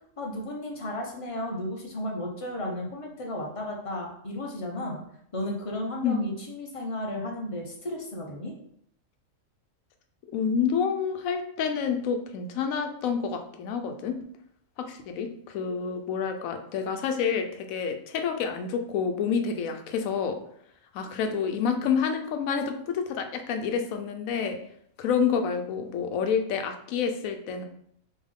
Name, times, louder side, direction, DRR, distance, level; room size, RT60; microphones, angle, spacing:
voice 1, 0.2-5.0 5.3-8.5, left 1 dB, 30° left, 0 dB, 0.7 m, -34 dB
voice 2, 6.0-6.3 10.3-14.1 14.8-20.4 20.9-24.6 25.0-27.6, left 6 dB, 80° left, 6 dB, 1.0 m, -28 dB
3.5 x 3.1 x 3.6 m, 0.68 s
omnidirectional pair, 1.4 m